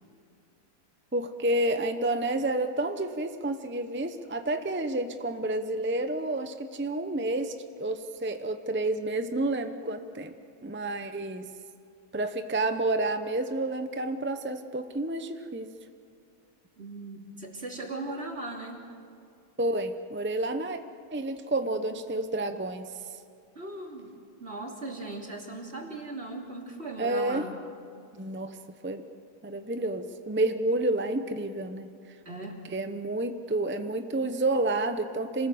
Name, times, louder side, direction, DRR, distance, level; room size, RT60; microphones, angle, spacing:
voice 1, 1.1-10.3 10.6-11.5 12.1-15.7 19.6-20.8 21.1-22.9 27.0-27.5 28.1-28.6 28.8-29.0 29.4-31.9 32.7-35.5, right 2 dB, 15° right, 8 dB, 0.3 m, -30 dB
voice 2, 16.8-18.9 23.5-24.1 24.4-27.5 32.2-32.6, right 2 dB, 40° right, 0 dB, 3.3 m, -38 dB
27.0 x 19.5 x 7.9 m, 2.4 s
omnidirectional pair, 1.7 m